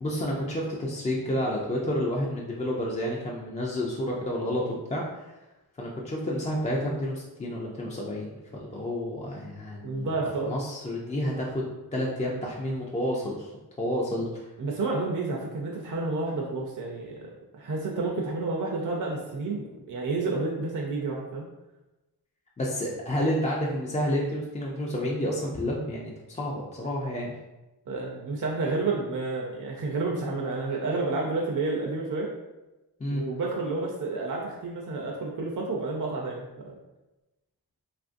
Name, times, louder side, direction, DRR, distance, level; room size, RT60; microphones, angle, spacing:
voice 1, 0.0-5.0 5.8-10.1 10.5-13.5 13.8-14.5 22.6-27.3 33.0-33.2, equal, 20° left, -3 dB, 0.3 m, -30 dB
voice 2, 9.8-10.5 14.6-21.5 27.9-32.3 33.1-36.5, right 3 dB, 55° right, -1 dB, 0.5 m, -30 dB
3.0 x 2.5 x 2.5 m, 1.0 s
wide cardioid pair, 100°, 39 cm